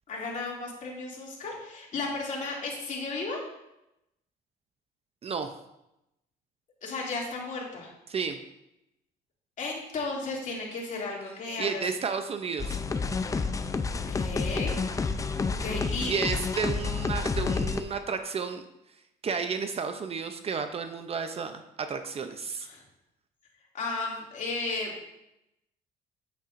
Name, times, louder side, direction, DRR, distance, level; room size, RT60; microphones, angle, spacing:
voice 1, 0.1-3.5 6.8-7.9 9.6-11.8 13.9-16.2 22.6-22.8 23.7-24.9, left 3 dB, 50° left, -3 dB, 2.6 m, -34 dB
voice 2, 5.2-5.5 8.1-8.4 11.6-12.8 15.8-18.6 19.2-22.7, right 5 dB, 35° right, 8 dB, 0.6 m, -32 dB
sound 1, 12.6-17.8, left 4 dB, 20° left, 0.5 m, -29 dB
8.6 x 8.4 x 2.6 m, 0.88 s
cardioid pair, 110°, 17 cm